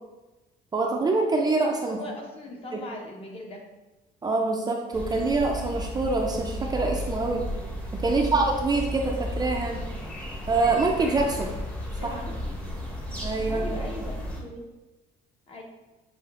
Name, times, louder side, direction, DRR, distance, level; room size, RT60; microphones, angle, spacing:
voice 1, 0.7-2.0 2.7-2.8 4.2-7.5 7.9-9.8 10.5-11.5 12.0-12.1 13.2-13.9, right 3 dB, 25° right, 1 dB, 0.4 m, -25 dB
voice 2, 1.8-3.6 8.0-8.4 12.0-12.8 13.4-14.6 15.5-15.6, left 1 dB, 35° left, 0 dB, 0.9 m, -40 dB
sound 1, 4.9-14.4, equal, 5° left, 0.8 m, -33 dB
6.4 x 2.4 x 2.4 m, 1.1 s
cardioid pair, 110°, 17 cm